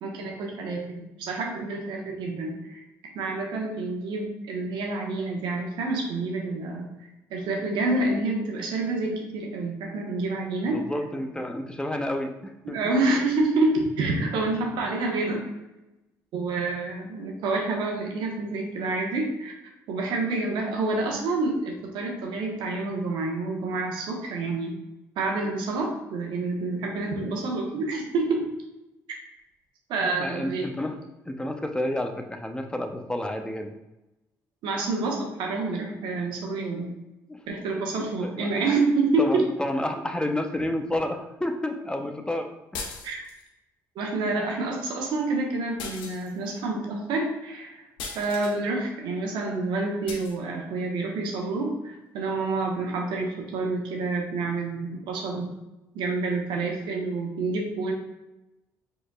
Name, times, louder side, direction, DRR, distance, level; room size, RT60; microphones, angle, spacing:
voice 1, 0.0-2.8 3.1-6.9 7.3-10.8 12.6-15.4 16.3-19.5 19.9-24.8 25.2-28.4 29.9-30.6 34.6-36.9 37.5-39.4 43.0-43.2 43.9-55.6 55.9-57.9, right 3 dB, 75° right, 1 dB, 1.0 m, -28 dB
voice 2, 10.6-12.8 13.1-13.2 30.2-31.0 31.3-33.8 37.3-37.4 38.0-38.6 39.2-43.0, left 1 dB, 10° left, 5 dB, 0.6 m, -30 dB
sound 1, 42.7-43.5 45.8-46.6 48.0-48.6 50.1-50.4, left 4 dB, 80° left, 0.7 m, -38 dB
4.7 x 4.3 x 2.3 m, 0.98 s
supercardioid pair, 60°, 8 cm